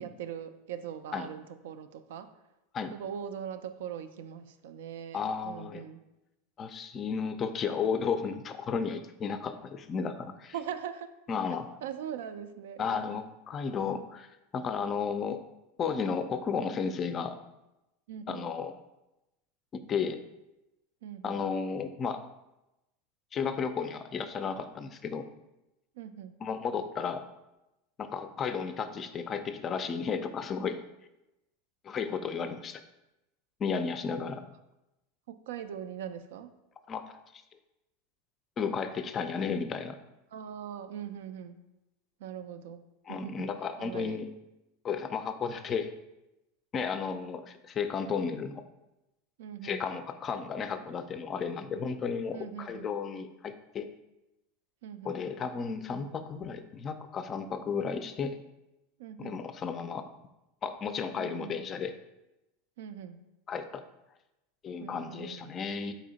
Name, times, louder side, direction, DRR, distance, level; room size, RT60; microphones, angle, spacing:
voice 1, 0.0-2.3 2.9-6.0 10.5-11.1 11.8-13.2 18.1-18.5 21.0-21.4 26.0-26.3 35.3-36.5 40.3-41.6 42.2-42.8 43.1-43.5 43.8-44.2 49.4-49.8 51.7-52.0 52.3-52.9 54.8-55.2 59.0-59.4 61.2-61.7 62.8-63.2 64.8-65.6, right 9 dB, 75° right, 10 dB, 0.3 m, -41 dB
voice 2, 5.1-5.8 6.6-10.5 11.3-11.7 12.8-14.3 14.5-15.4 15.8-17.4 18.3-18.7 19.7-20.2 21.2-22.2 23.3-25.3 26.4-27.2 28.0-30.8 31.8-32.8 33.6-34.5 36.9-37.0 38.6-40.0 43.1-44.3 44.8-45.9 46.7-48.6 49.6-53.9 55.0-58.4 59.2-60.0 60.6-61.9 63.5-63.8 64.6-65.9, left 6 dB, 35° left, 10 dB, 0.4 m, -33 dB
4.2 x 2.7 x 3.9 m, 0.95 s
hypercardioid pair, 95°, 0 cm